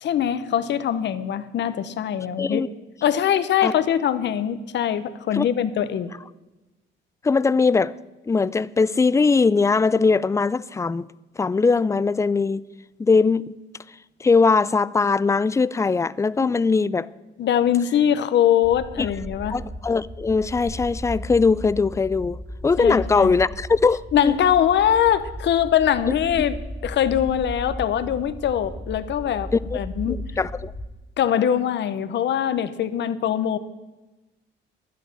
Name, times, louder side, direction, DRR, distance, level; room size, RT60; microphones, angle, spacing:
voice 1, 0.0-2.6 3.0-6.1 16.4-16.5 17.4-19.6 22.8-23.3 24.1-26.6 26.8-30.2 31.2-33.6, left 9 dB, 65° left, 0.8 m, -22 dB
voice 2, 7.2-7.9 8.3-11.1 11.4-12.6 13.0-13.6 14.2-17.1 19.0-19.1 19.5-22.4 22.6-24.4 26.1-26.2 29.7-29.8 30.0-30.7, left 4 dB, 15° left, 0.4 m, -20 dB
sound 1, 18.6-30.9, equal, ahead, 1.0 m, -36 dB
12.0 x 9.2 x 6.5 m
cardioid pair, 90°, 20 cm